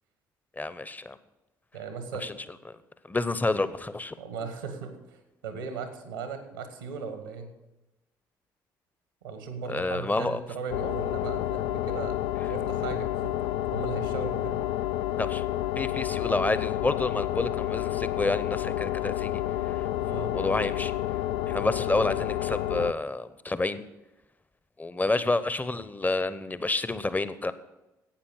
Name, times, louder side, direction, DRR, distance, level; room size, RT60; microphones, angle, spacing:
voice 1, 0.6-1.2 2.2-2.3 2.7-2.8 3.1-4.1 9.7-10.4 15.2-15.4 15.8-19.9 20.1-20.9 21.5-23.8 24.8-27.5, left 2 dB, 15° left, 14 dB, 0.8 m, -29 dB
voice 2, 1.7-2.4 4.2-7.5 9.2-12.2 12.5-13.3 13.7-14.6 20.1-20.4, right 5 dB, 85° right, 8 dB, 1.4 m, -37 dB
sound 1, 10.7-22.9, left 13 dB, 70° left, 0.4 m, -30 dB
12.0 x 8.6 x 6.4 m, 1.0 s
figure-of-eight pair, 45°, 10 cm